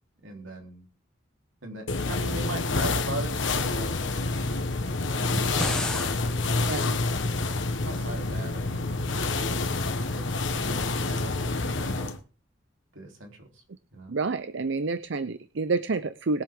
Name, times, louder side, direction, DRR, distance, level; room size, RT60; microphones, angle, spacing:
voice 1, 0.2-0.9 1.6-3.9 4.4-6.7 7.8-8.9 10.1-10.3 10.5-12.1 12.9-13.6 13.9-14.1, right 2 dB, 90° right, 2 dB, 3.4 m, -40 dB
sound 1, 1.9-12.2, left 3 dB, 75° left, 1.2 m, -28 dB
sound 2, 5.2-6.1, left 1 dB, 5° left, 0.8 m, -32 dB
voice 2, 6.7-7.0 14.1-16.4, right 3 dB, 70° right, 13 dB, 0.6 m, -28 dB
21.0 x 7.6 x 3.7 m, 0.36 s
head